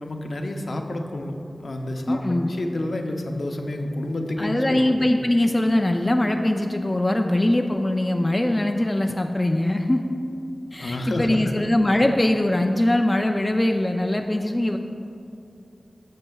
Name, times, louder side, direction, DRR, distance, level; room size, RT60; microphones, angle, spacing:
voice 1, 0.0-2.2 2.4-4.9 10.8-11.6, left 1 dB, 65° left, 3 dB, 0.6 m, -29 dB
voice 2, 2.1-2.5 4.4-10.0 10.7-14.8, left 1 dB, 25° left, 4 dB, 0.4 m, -22 dB
11.5 x 6.6 x 2.3 m, 2.6 s
wide cardioid pair, 70°, 0 cm